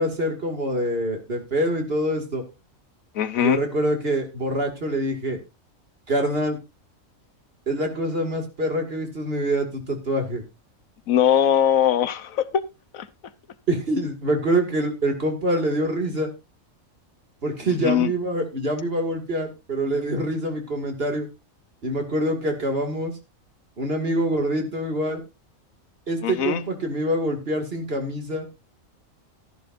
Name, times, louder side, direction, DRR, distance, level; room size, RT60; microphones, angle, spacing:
voice 1, 0.0-2.4 3.4-5.4 6.1-6.6 7.7-10.4 13.7-16.3 17.4-21.3 21.8-23.1 23.8-25.2 26.1-28.6, right 1 dB, 45° right, 2.6 m, -25 dB
voice 2, 3.1-3.6 11.1-12.6 12.9-13.1 17.6-18.1 26.2-26.6, left 10 dB, 90° left, 1.3 m, -21 dB
14.0 x 11.0 x 2.6 m
omnidirectional pair, 1.4 m